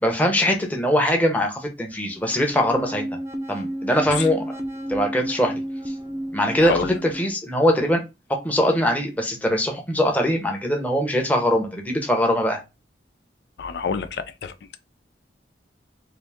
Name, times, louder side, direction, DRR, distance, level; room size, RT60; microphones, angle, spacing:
voice 1, 0.0-3.0 3.5-4.6 4.9-5.6 6.3-8.0 8.4-12.6, equal, 10° left, 0.8 m, -22 dB
sound 1, 2.2-7.3, right 1 dB, 15° right, 0.6 m, -32 dB
voice 2, 6.6-6.9 13.6-14.8, left 5 dB, 70° left, 0.4 m, -28 dB
3.9 x 2.6 x 3.4 m
head